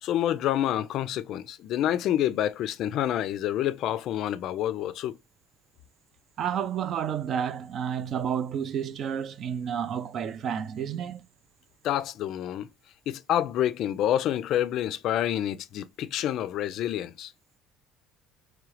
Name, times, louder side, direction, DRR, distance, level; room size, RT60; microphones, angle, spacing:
voice 1, 0.0-5.2 11.8-12.7 13.1-17.3, left 11 dB, 55° left, 0.4 m, -28 dB
voice 2, 6.4-11.2, right 8 dB, 40° right, 0.4 m, -30 dB
3.6 x 3.1 x 3.2 m
cardioid pair, 145°, 0 cm